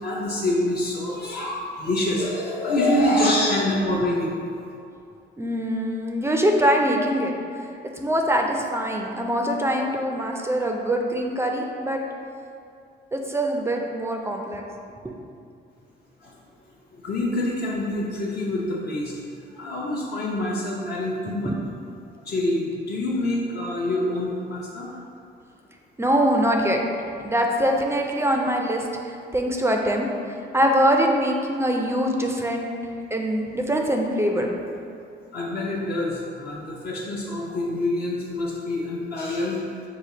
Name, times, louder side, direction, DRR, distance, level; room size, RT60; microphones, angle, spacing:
voice 1, 0.0-4.3 17.0-19.1 19.5-21.5 22.3-24.9 35.3-39.6, left 1 dB, 50° left, -5 dB, 0.7 m, -26 dB
voice 2, 5.4-7.3 8.0-12.0 13.1-14.6 15.0-15.1 21.4-21.6 26.0-26.8 27.2-30.1 30.5-32.7 33.1-34.6, equal, 15° right, 1 dB, 0.4 m, -23 dB
5.0 x 2.4 x 3.9 m, 2.5 s
cardioid pair, 90°, 20 cm